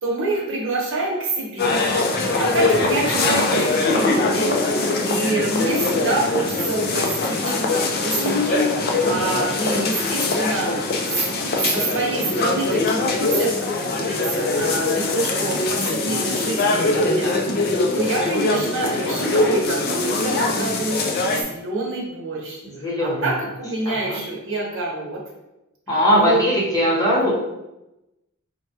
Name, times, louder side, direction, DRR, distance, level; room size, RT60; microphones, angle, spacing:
voice 1, 0.0-3.6 3.9-4.5 4.8-10.8 11.5-17.6 17.9-21.0 21.3-22.6 23.0-25.2 26.2-26.4, right 2 dB, 60° right, -3 dB, 0.9 m, -26 dB
sound 1, 1.6-21.4, left 2 dB, 45° left, 0.4 m, -22 dB
voice 2, 2.8-4.1 9.1-9.8 14.9-15.6 18.2-18.6 22.6-23.3 23.8-24.2 25.9-27.3, equal, 15° left, -6 dB, 0.9 m, -23 dB
4.5 x 2.2 x 2.8 m, 0.94 s
head